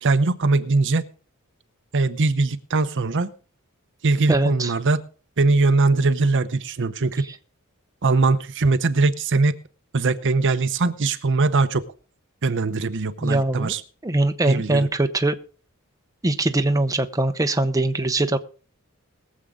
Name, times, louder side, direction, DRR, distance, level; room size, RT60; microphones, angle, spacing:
voice 1, 0.0-1.0 1.9-3.3 4.0-5.0 5.4-7.2 8.0-9.5 9.9-11.9 12.4-13.8 14.5-14.9, right 3 dB, 60° right, 11 dB, 0.8 m, -21 dB
voice 2, 4.3-4.7 13.2-13.7 14.0-15.4 16.2-18.4, right 2 dB, 15° right, 7 dB, 0.7 m, -22 dB
22.0 x 7.6 x 3.7 m, 0.39 s
head